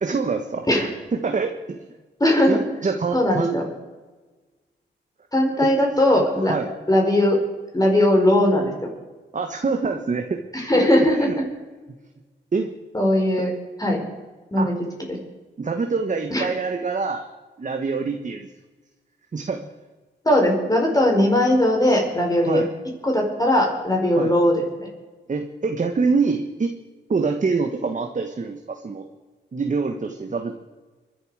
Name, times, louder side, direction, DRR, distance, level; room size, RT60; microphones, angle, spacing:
voice 1, 0.0-0.7 1.2-1.8 2.5-3.6 5.6-5.7 6.1-6.7 9.3-10.4 11.2-11.4 12.5-12.7 14.6-14.7 15.6-17.3 17.6-18.5 19.3-19.7 22.4-22.7 24.1-24.3 25.3-26.7 27.1-29.1 29.5-30.6, right 4 dB, 40° right, 5 dB, 1.3 m, -25 dB
voice 2, 2.2-2.6 3.1-3.7 5.3-6.5 6.9-7.4 7.7-8.9 10.5-11.4 12.9-13.5 13.8-14.0 14.5-14.7 15.1-15.2 16.3-16.5 20.2-22.6 23.0-24.9, left 1 dB, 20° left, 1 dB, 4.6 m, -19 dB
23.0 x 11.0 x 4.9 m, 1.3 s
cardioid pair, 75°, 20 cm